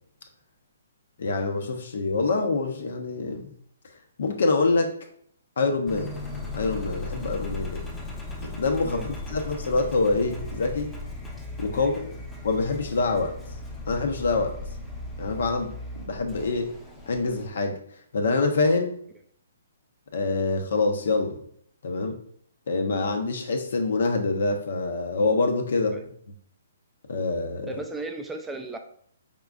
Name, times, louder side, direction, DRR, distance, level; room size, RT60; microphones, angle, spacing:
voice 1, 1.2-3.5 4.2-5.0 5.6-6.1 6.5-7.8 8.5-10.9 11.6-12.1 12.4-13.3 13.9-14.5 15.2-15.7 16.0-16.7 17.1-17.8 18.1-18.9 20.1-21.4 21.8-22.2 22.7-26.0 27.1-27.7, left 3 dB, 70° left, 5 dB, 0.8 m, -25 dB
Engine, 5.9-17.5, left 2 dB, 10° left, 0.8 m, -37 dB
voice 2, 27.7-28.8, right 3 dB, 10° right, 5 dB, 0.3 m, -36 dB
4.8 x 3.7 x 2.4 m, 0.64 s
hypercardioid pair, 145°, 0 cm